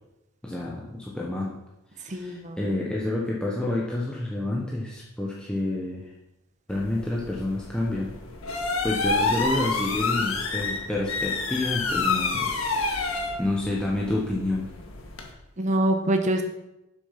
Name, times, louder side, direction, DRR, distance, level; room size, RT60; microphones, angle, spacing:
voice 1, 0.4-1.6 1.9-6.1 6.7-8.1 8.8-14.7, left 2 dB, 5° left, -4 dB, 0.9 m, -29 dB
voice 2, 2.1-2.6 15.6-16.4, right 1 dB, 35° right, 5 dB, 0.9 m, -24 dB
sound 1, 6.7-15.3, left 3 dB, 75° left, 1.5 m, -29 dB
7.5 x 6.3 x 5.7 m, 0.91 s
head